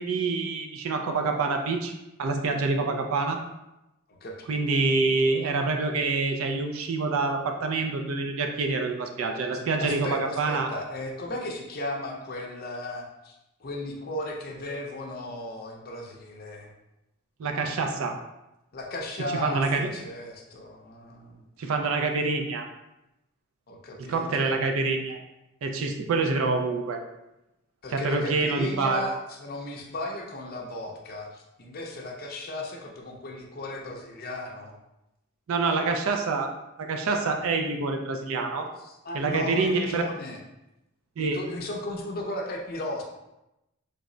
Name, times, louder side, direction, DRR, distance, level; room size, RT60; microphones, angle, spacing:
voice 1, 0.0-1.9 2.2-3.4 4.5-10.7 17.4-18.2 19.4-19.9 21.6-22.7 24.0-25.2 25.6-27.0 27.9-29.1 35.5-36.5 36.8-38.7 39.1-40.0 41.2-41.4, right 3 dB, 70° right, 4 dB, 0.4 m, -26 dB
voice 2, 9.5-16.7 18.7-21.4 23.7-24.5 27.8-34.7 38.8-40.4 41.2-43.0, left 1 dB, 45° left, 0 dB, 0.5 m, -36 dB
3.3 x 2.0 x 3.7 m, 0.92 s
head